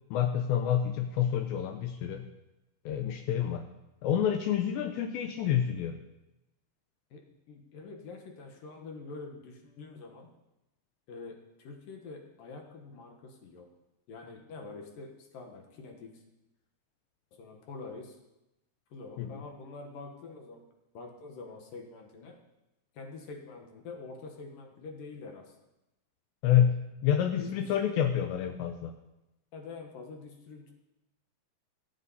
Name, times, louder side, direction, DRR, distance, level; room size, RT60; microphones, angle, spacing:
voice 1, 0.1-2.3 2.9-3.6 4.0-6.0 19.2-19.4 26.4-28.9, left 9 dB, 80° left, 6 dB, 2.8 m, -28 dB
voice 2, 7.1-10.3 11.1-13.7 14.1-16.2 17.3-18.2 18.9-20.7 20.9-22.4 22.9-25.6 27.4-27.7 29.5-30.7, left 3 dB, 60° left, 2 dB, 2.5 m, -46 dB
24.5 x 8.3 x 4.2 m, 0.94 s
omnidirectional pair, 5.3 m